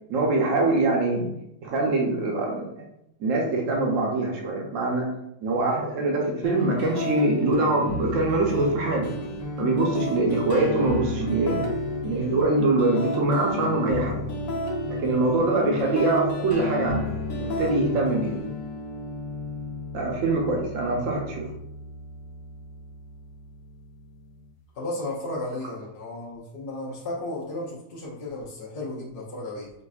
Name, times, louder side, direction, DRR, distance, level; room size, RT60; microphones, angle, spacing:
voice 1, 0.1-1.3 1.6-2.8 3.2-5.1 5.4-9.1 9.6-11.6 12.0-14.2 14.9-17.1 17.4-18.4 19.9-21.5, right 2 dB, 75° right, 0 dB, 1.1 m, -24 dB
sound 1, 6.4-24.4, left 2 dB, 80° left, 1.1 m, -32 dB
voice 2, 24.7-29.7, left 2 dB, 50° left, -5 dB, 0.7 m, -34 dB
4.9 x 2.4 x 2.3 m, 0.81 s
omnidirectional pair, 1.4 m